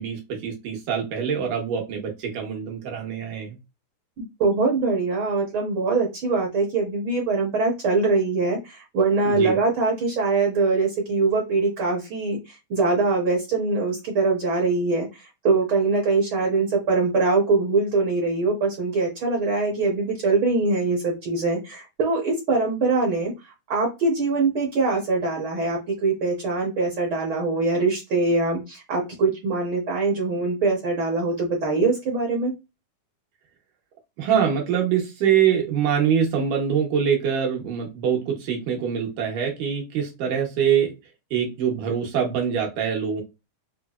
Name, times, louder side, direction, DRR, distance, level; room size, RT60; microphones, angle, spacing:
voice 1, 0.0-3.6 9.2-9.6 34.2-40.9 41.3-43.2, right 8 dB, 85° right, 1 dB, 2.8 m, -24 dB
voice 2, 4.4-23.3 23.7-32.5, right 3 dB, 70° right, 0 dB, 1.2 m, -23 dB
5.8 x 2.2 x 2.4 m, 0.25 s
omnidirectional pair, 3.6 m